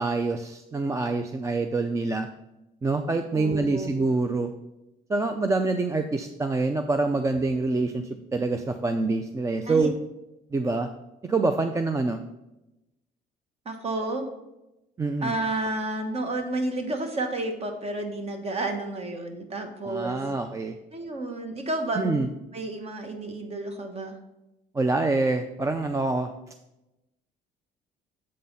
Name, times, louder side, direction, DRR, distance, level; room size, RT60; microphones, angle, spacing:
voice 1, 0.0-2.3 2.8-4.5 5.1-9.9 10.5-10.9 11.3-12.2 15.0-15.3 19.8-20.8 22.0-22.3 24.7-26.3, right 3 dB, 20° right, 7 dB, 0.4 m, -26 dB
voice 2, 3.3-3.9 9.6-9.9 13.6-14.3 15.2-20.2 20.9-24.2, right 2 dB, 35° right, 5 dB, 1.2 m, -31 dB
7.6 x 4.0 x 5.5 m, 0.94 s
cardioid pair, 110°, 17 cm